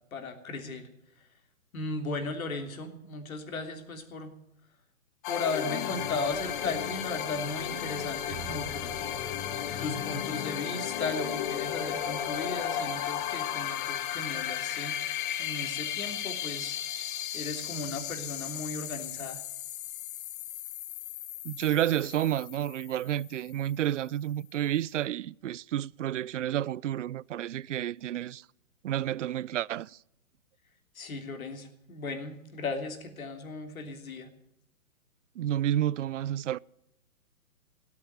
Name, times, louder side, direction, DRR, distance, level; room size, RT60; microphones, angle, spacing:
voice 1, 0.1-0.9 1.2-1.3 1.7-4.3 5.3-9.1 9.8-17.0 17.3-19.4 30.9-34.3, left 3 dB, 70° left, 3.2 m, -36 dB
sound 1, 5.2-23.7, left 10 dB, 35° left, 1.3 m, -35 dB
Bowed string instrument, 8.3-14.5, right 4 dB, 5° right, 0.5 m, -51 dB
voice 2, 21.4-28.5 28.8-30.0 35.4-36.6, right 12 dB, 55° right, 0.5 m, -30 dB
17.0 x 8.5 x 9.3 m
hypercardioid pair, 135°, 43 cm